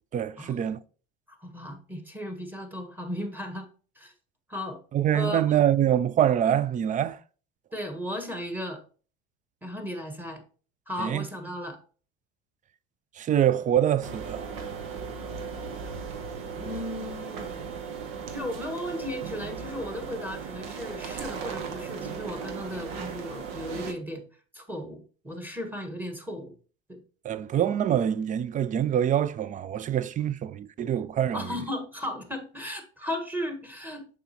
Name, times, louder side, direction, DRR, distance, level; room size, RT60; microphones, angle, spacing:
voice 1, 0.1-0.8 4.9-7.2 11.0-11.2 13.2-14.4 27.2-31.4, right 10 dB, 25° right, 0.4 m, -25 dB
voice 2, 1.4-3.7 3.9-4.1 4.5-4.8 5.1-5.6 7.7-8.8 9.6-10.4 10.9-11.8 16.5-17.5 18.2-24.3 24.5-26.5 26.9-27.0 31.3-34.1, left 1 dB, 5° right, 1.4 m, -35 dB
sound 1, 14.0-23.9, right 6 dB, 80° right, 1.1 m, -37 dB
6.7 x 5.1 x 2.9 m
supercardioid pair, 95°, 30 cm